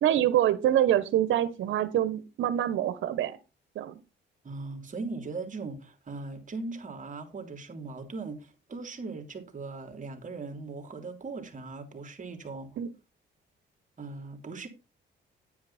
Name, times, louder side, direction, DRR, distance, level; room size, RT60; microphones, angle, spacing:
voice 1, 0.0-3.4 3.7-3.9 12.8-12.9, right 11 dB, 75° right, 1.2 m, -25 dB
voice 2, 4.4-12.8 14.0-14.7, right 3 dB, 40° right, 3.3 m, -39 dB
10.0 x 9.4 x 4.3 m
cardioid pair, 90°, 20 cm